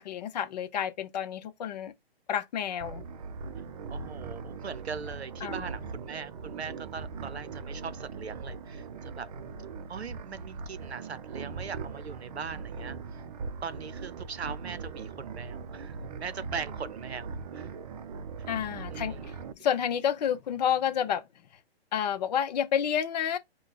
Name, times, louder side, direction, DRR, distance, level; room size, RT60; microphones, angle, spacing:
voice 1, 0.0-1.9 2.3-3.0 5.4-5.6 18.5-21.2 21.9-23.4, left 9 dB, 40° left, 0.8 m, -30 dB
sound 1, 2.8-19.5, right 5 dB, 40° right, 0.6 m, -40 dB
voice 2, 3.9-9.3 9.9-13.2 13.6-17.7 18.9-19.4, right 6 dB, 85° right, 0.7 m, -40 dB
4.8 x 2.3 x 4.0 m
figure-of-eight pair, 135°, 31 cm